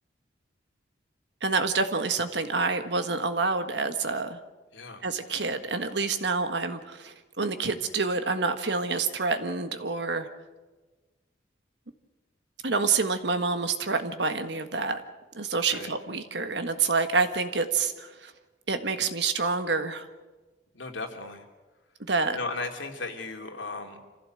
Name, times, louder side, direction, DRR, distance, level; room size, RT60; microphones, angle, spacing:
voice 1, 1.4-4.4 5.0-10.3 12.6-15.0 15.3-18.3 18.7-20.1 22.1-22.4, right 4 dB, 65° right, 8 dB, 1.6 m, -27 dB
voice 2, 4.7-5.0 15.7-15.9 20.7-21.4 22.3-24.0, left 3 dB, 85° left, 3 dB, 2.8 m, -36 dB
26.5 x 15.5 x 7.8 m, 1.2 s
head